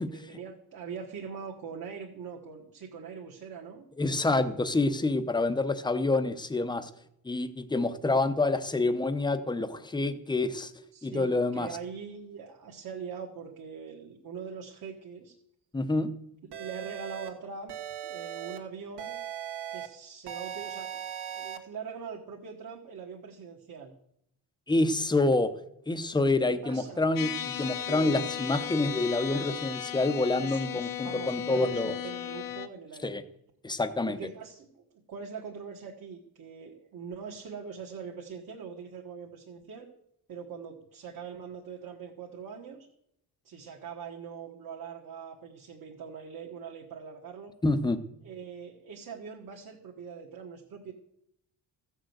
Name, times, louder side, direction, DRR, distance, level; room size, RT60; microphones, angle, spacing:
voice 1, 0.0-3.9 10.9-15.4 16.4-17.8 18.0-19.2 19.7-23.9 26.5-27.1 27.8-28.3 29.3-29.6 30.4-33.2 34.0-39.9 40.3-42.9 43.4-47.5 48.2-50.9, right 6 dB, 50° right, 0 dB, 1.6 m, -42 dB
voice 2, 4.0-6.9 7.2-10.7 11.0-11.7 15.7-16.1 24.7-25.5 25.9-27.3 27.6-31.9 33.0-33.2 33.6-34.2 47.6-48.0, left 2 dB, 10° left, 10 dB, 0.7 m, -27 dB
sound 1, 16.5-17.3 17.7-18.6 19.0-19.9 20.3-21.6, right 9 dB, 75° right, 1.8 m, -38 dB
sound 2, 27.2-32.7, left 10 dB, 55° left, 0.8 m, -36 dB
15.0 x 6.5 x 7.9 m, 0.75 s
wide cardioid pair, 170°, 42 cm